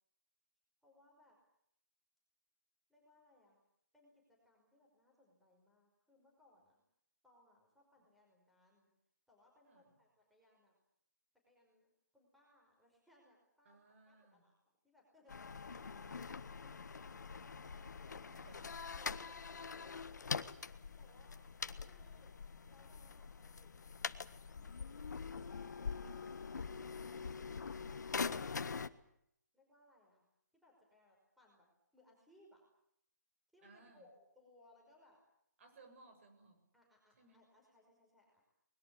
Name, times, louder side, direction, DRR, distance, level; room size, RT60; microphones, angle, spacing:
voice 1, 0.8-1.4 2.9-3.6 3.9-6.8 7.2-8.9 9.3-10.7 11.5-13.8 14.1-14.6 14.8-15.5 15.8-18.2 18.8-21.4 21.9-22.3 22.7-27.7 29.5-30.2 30.6-31.7 31.9-32.6 33.5-35.2 36.7-38.4, left 1 dB, ahead, -2 dB, 5.3 m, -69 dB
voice 2, 13.6-14.5 15.7-16.2 18.3-19.0 33.6-34.1 35.6-36.7 37.1-37.5, right 3 dB, 45° right, 6 dB, 7.2 m, -63 dB
sound 1, 15.3-28.9, left 5 dB, 75° left, 1.5 m, -44 dB
23.5 x 21.5 x 8.7 m, 0.73 s
hypercardioid pair, 165°, 10 cm